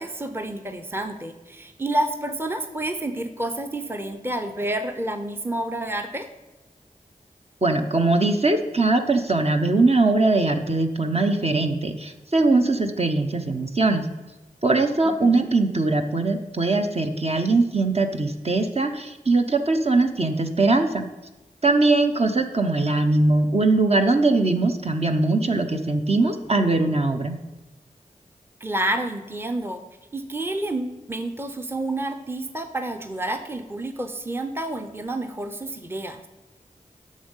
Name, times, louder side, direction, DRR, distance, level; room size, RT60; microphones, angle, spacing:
voice 1, 0.0-6.3 15.0-15.5 28.6-29.8 30.1-36.2, right 1 dB, 15° right, 7 dB, 0.7 m, -29 dB
voice 2, 7.6-14.1 14.6-21.1 21.6-27.4, right 3 dB, 45° right, 5 dB, 0.9 m, -21 dB
8.4 x 6.5 x 5.5 m, 1.1 s
cardioid pair, 45°, 15 cm